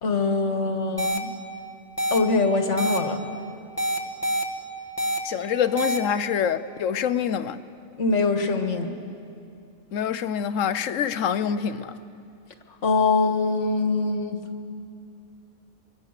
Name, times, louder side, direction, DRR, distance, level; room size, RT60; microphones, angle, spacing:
voice 1, 0.0-1.3 2.1-3.2 8.0-8.9 12.8-14.4, left 3 dB, 70° left, 1.9 m, -23 dB
sound 1, 1.0-1.2 2.0-2.2 2.8-3.0 3.8-4.4 5.0-5.2 5.8-6.0, equal, 10° left, 1.5 m, -25 dB
voice 2, 5.2-7.6 9.9-11.9, left 8 dB, 90° left, 1.2 m, -25 dB
25.0 x 23.5 x 6.6 m
omnidirectional pair, 1.3 m